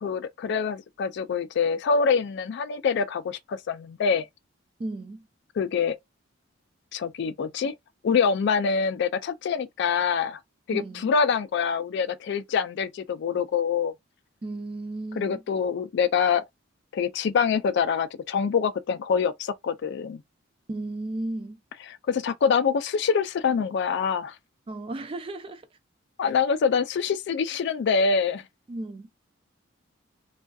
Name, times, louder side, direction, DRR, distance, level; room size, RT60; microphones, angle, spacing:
voice 1, 0.0-4.3 5.6-6.0 6.9-7.7 8.0-10.4 10.7-13.9 15.2-16.4 16.9-20.2 22.1-24.3 26.2-28.4, left 6 dB, 55° left, 0.3 m, -25 dB
voice 2, 4.8-5.3 10.7-11.1 14.4-15.4 20.7-21.6 24.7-25.7 28.7-29.1, right 2 dB, 25° right, 0.3 m, -34 dB
2.6 x 2.3 x 2.3 m
head